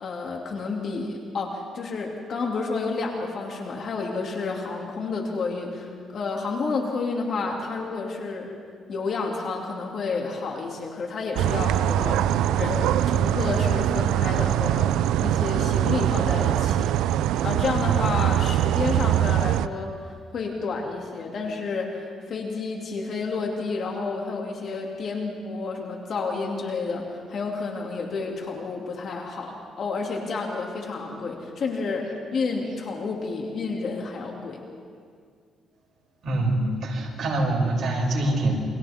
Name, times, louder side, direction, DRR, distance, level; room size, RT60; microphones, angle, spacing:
voice 1, 0.0-8.5 8.9-16.9 17.4-34.6, left 4 dB, 60° left, 0 dB, 2.5 m, -30 dB
sound 1, 11.3-19.7, right 12 dB, 90° right, 0.4 m, -23 dB
voice 2, 36.2-38.6, right 2 dB, 55° right, -3 dB, 7.1 m, -24 dB
29.0 x 25.5 x 3.6 m, 2.1 s
cardioid pair, 90°, 0 cm